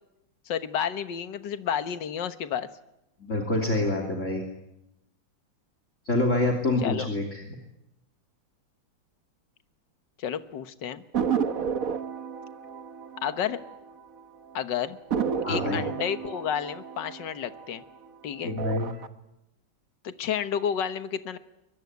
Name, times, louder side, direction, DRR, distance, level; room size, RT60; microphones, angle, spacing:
voice 1, 0.5-2.7 6.8-7.1 10.2-11.0 13.2-13.6 14.5-15.0 15.5-17.8 18.2-18.5 20.0-21.4, left 8 dB, 70° left, 11 dB, 1.8 m, -31 dB
voice 2, 3.2-4.4 6.0-7.4 15.4-15.8 18.4-18.9, left 2 dB, 40° left, 4 dB, 3.3 m, -26 dB
sound 1, 11.1-14.2 14.5-14.6 15.1-18.0 18.5-19.1, right 7 dB, 50° right, 1.6 m, -31 dB
23.0 x 23.0 x 9.5 m, 0.89 s
omnidirectional pair, 2.1 m